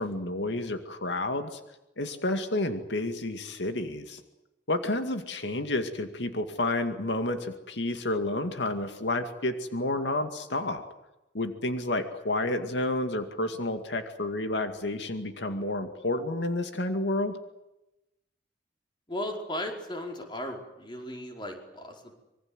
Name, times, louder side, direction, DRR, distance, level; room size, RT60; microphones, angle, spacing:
voice 1, 0.0-1.6 2.0-4.2 4.7-10.8 11.3-17.3, left 2 dB, 85° left, 7 dB, 2.3 m, -30 dB
voice 2, 19.1-22.2, left 1 dB, 25° left, 3 dB, 4.8 m, -36 dB
25.5 x 23.5 x 8.0 m, 0.94 s
head